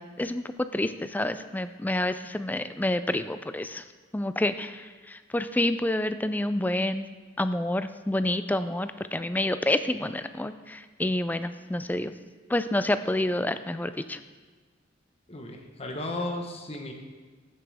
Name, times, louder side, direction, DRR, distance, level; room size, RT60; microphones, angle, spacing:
voice 1, 0.0-3.8 4.1-7.1 7.4-12.1 12.5-14.2, left 1 dB, 10° left, 11 dB, 0.3 m, -28 dB
voice 2, 15.3-16.9, left 1 dB, 30° left, 2 dB, 1.2 m, -34 dB
14.0 x 7.5 x 3.5 m, 1.4 s
head